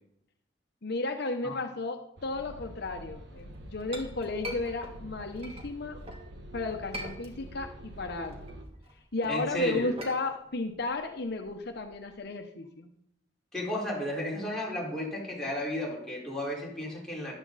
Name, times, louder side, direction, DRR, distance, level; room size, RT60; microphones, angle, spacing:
voice 1, 0.8-6.0 6.5-8.4 9.1-12.9, left 3 dB, 60° left, 5 dB, 0.9 m, -34 dB
sound 1, 2.2-8.6, equal, 65° right, 1.6 m, -46 dB
Chink clink, 3.4-6.3 6.7-7.7 8.1-12.2, equal, 30° right, 2.3 m, -44 dB
voice 2, 9.3-9.9 13.5-17.3, left 1 dB, 5° left, -5 dB, 4.6 m, -33 dB
14.0 x 11.5 x 4.1 m, 0.74 s
head